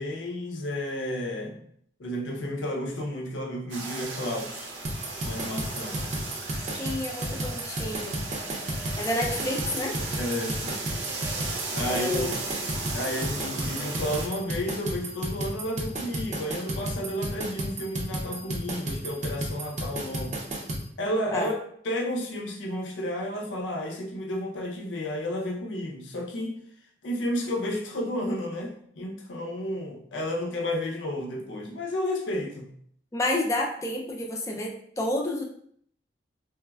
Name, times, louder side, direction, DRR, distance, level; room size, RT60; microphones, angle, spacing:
voice 1, 0.0-1.6 2.0-4.7 5.2-6.0 10.2-10.9 11.7-12.3 12.9-20.4 21.0-21.6 21.8-26.6 27.0-32.7, left 1 dB, 90° left, 2 dB, 0.5 m, -32 dB
sound 1, 3.7-14.3, right 3 dB, 90° right, 0.6 m, -36 dB
sound 2, 4.8-20.8, right 1 dB, 40° right, 0.5 m, -32 dB
voice 2, 6.8-8.2 9.0-10.0 11.8-12.3 21.3-21.5 33.1-35.4, left 1 dB, 15° left, -1 dB, 0.4 m, -30 dB
3.3 x 2.1 x 2.2 m, 0.64 s
head